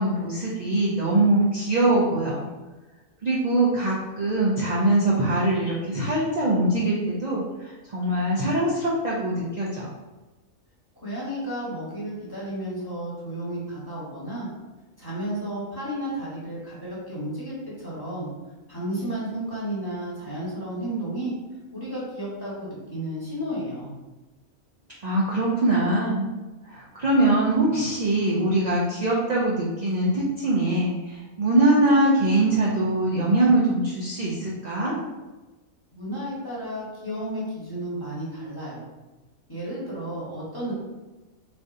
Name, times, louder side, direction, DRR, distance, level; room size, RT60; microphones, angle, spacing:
voice 1, 0.0-2.4 3.2-9.9 25.0-26.3 26.7-34.9, right 1 dB, 45° right, -6 dB, 0.5 m, -22 dB
voice 2, 11.0-14.5 15.0-18.3 18.7-21.3 21.7-23.9 35.9-38.8 39.5-40.7, right 1 dB, 15° left, -8 dB, 1.1 m, -32 dB
3.8 x 3.4 x 2.6 m, 1.2 s
omnidirectional pair, 1.5 m